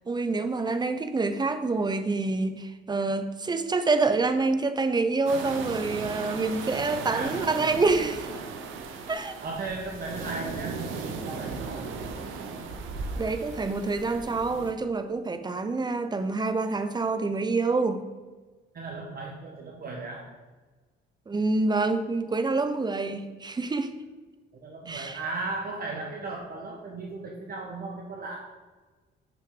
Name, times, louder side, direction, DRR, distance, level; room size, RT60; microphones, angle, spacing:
voice 1, 0.1-8.3 9.1-9.4 13.2-18.1 21.3-23.9 24.9-25.2, right 3 dB, 20° right, 10 dB, 0.6 m, -27 dB
sound 1, 5.3-14.7, right 4 dB, 85° right, 0.8 m, -36 dB
voice 2, 7.1-7.6 9.1-11.9 18.7-20.3 24.5-28.4, right 3 dB, 50° right, 0 dB, 1.0 m, -36 dB
6.6 x 5.8 x 3.7 m, 1.3 s
cardioid pair, 90°, 20 cm